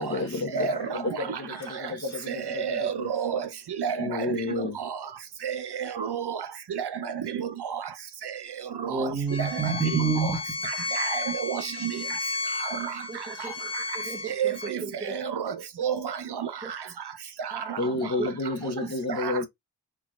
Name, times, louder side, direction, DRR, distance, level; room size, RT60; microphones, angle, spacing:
voice 1, 0.0-3.1 4.0-4.8 17.8-19.5, left 3 dB, 40° left, 1.0 m, -31 dB
voice 2, 0.5-1.0 2.3-3.5 3.8-4.3 5.4-6.4 6.7-6.9 7.4-7.8 8.8-9.1 9.4-10.3 11.0-12.0 12.8-12.9 14.4-14.8 15.2-15.5 15.8-16.5 17.5-17.8 19.2-19.3, right 7 dB, 70° right, 0.6 m, -30 dB
voice 3, 8.9-10.4 13.1-15.2 16.6-16.7 17.5-18.3, right 4 dB, 15° right, 1.4 m, -31 dB
Bowed string instrument, 9.3-14.7, left 4 dB, 80° left, 1.1 m, -33 dB
4.7 x 3.0 x 2.3 m
wide cardioid pair, 85°, 41 cm